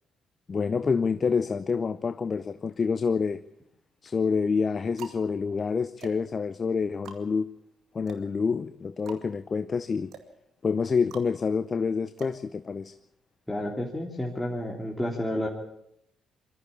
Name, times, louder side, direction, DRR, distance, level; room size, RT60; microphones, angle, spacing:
voice 1, 0.5-3.4 4.0-7.5 7.9-10.1 10.6-12.9, left 5 dB, 40° left, 0.7 m, -27 dB
sound 1, 3.0-3.7 4.4-13.2, right 7 dB, 65° right, 2.1 m, -48 dB
voice 2, 13.5-15.5, left 1 dB, 10° left, 3.3 m, -31 dB
22.0 x 13.5 x 8.6 m
hypercardioid pair, 50°, 0 cm